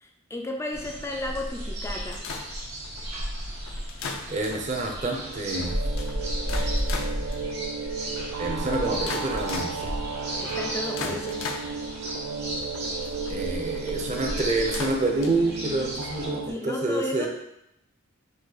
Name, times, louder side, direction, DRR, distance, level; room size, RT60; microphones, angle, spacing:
voice 1, 0.0-2.3 10.4-11.5 16.4-17.3, left 2 dB, 15° left, 2 dB, 0.4 m, -33 dB
sound 1, 0.7-16.3, equal, 55° right, 1.2 m, -34 dB
sound 2, 2.1-16.1, left 4 dB, 75° left, 0.5 m, -39 dB
voice 2, 4.3-5.8 8.4-9.9 11.0-11.2 13.3-17.3, right 2 dB, 35° right, 1 dB, 0.6 m, -28 dB
sound 3, 4.9-16.5, right 5 dB, 85° right, 0.4 m, -35 dB
5.1 x 2.3 x 3.9 m, 0.81 s
head